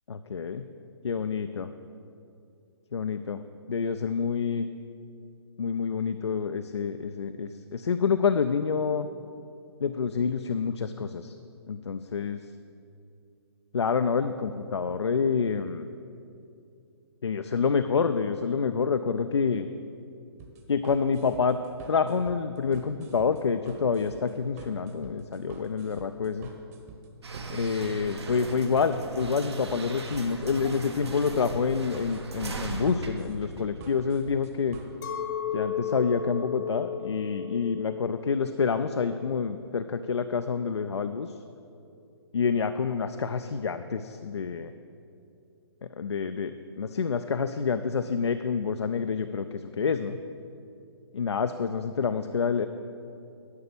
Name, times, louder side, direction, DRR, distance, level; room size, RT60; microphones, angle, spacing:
voice 1, 0.1-0.7 1.0-1.7 2.9-3.4 3.7-4.7 5.6-9.1 9.8-11.3 11.7-12.4 13.7-15.9 17.2-19.7 20.7-21.6 21.9-26.5 27.5-34.8 35.5-41.3 42.3-44.7 45.8-50.2 51.1-52.7, left 5 dB, 75° left, 8 dB, 0.5 m, -28 dB
sound 1, 20.4-35.2, right 4 dB, 35° right, 1.3 m, -48 dB
sound 2, 27.2-34.2, right 2 dB, 70° right, 1.4 m, -38 dB
Chink clink, 35.0-40.5, left 7 dB, 45° left, 0.9 m, -36 dB
11.5 x 5.8 x 6.8 m, 2.6 s
figure-of-eight pair, 135°, 14 cm